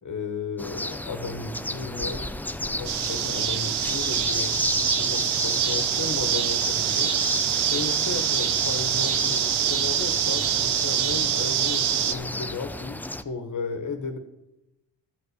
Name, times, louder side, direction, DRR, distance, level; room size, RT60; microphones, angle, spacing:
voice 1, 0.0-2.3 2.6-4.6 5.0-7.1 7.7-14.2, left 4 dB, 40° left, 6 dB, 1.4 m, -34 dB
sound 1, 0.6-13.2, left 1 dB, 5° left, 0.4 m, -32 dB
sound 2, 2.8-12.1, right 10 dB, 60° right, 0.8 m, -25 dB
13.0 x 5.3 x 8.2 m, 0.90 s
cardioid pair, 85°, 45 cm